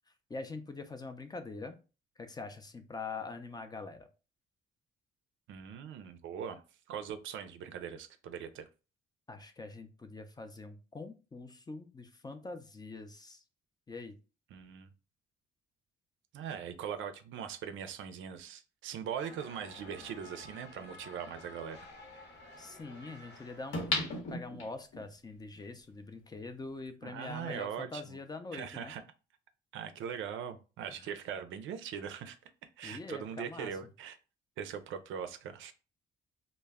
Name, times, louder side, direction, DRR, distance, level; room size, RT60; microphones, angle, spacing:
voice 1, 0.3-1.8 2.2-4.1 9.3-13.4 13.9-14.2 22.6-23.9 24.3-28.9 31.0-31.2 32.8-33.8, left 3 dB, 20° left, 8 dB, 0.4 m, -44 dB
voice 2, 5.5-6.6 6.9-8.6 14.5-14.9 16.3-21.9 27.0-28.2 28.5-29.0 29.7-32.4 32.8-34.2 34.6-35.7, right 8 dB, 75° right, 9 dB, 0.4 m, -41 dB
sound 1, 19.2-24.2, left 2 dB, 55° left, 0.7 m, -52 dB
sound 2, 20.1-20.2 23.7-25.0 25.5-25.6, left 2 dB, 80° left, 0.9 m, -34 dB
2.1 x 2.1 x 3.4 m, 0.32 s
cardioid pair, 90°, 20 cm